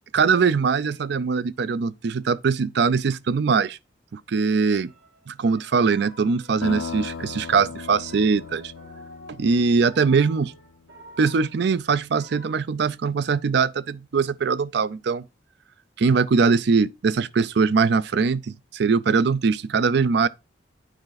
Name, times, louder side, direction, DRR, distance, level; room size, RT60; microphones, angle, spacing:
voice 1, 0.1-3.8 4.1-4.9 5.3-8.7 9.3-10.5 11.2-15.2 16.0-20.3, right 5 dB, 60° right, 0.4 m, -22 dB
sound 1, 4.8-12.5, equal, 80° right, 3.0 m, -49 dB
sound 2, 6.6-10.9, left 5 dB, 90° left, 0.4 m, -37 dB
9.1 x 4.8 x 4.0 m
head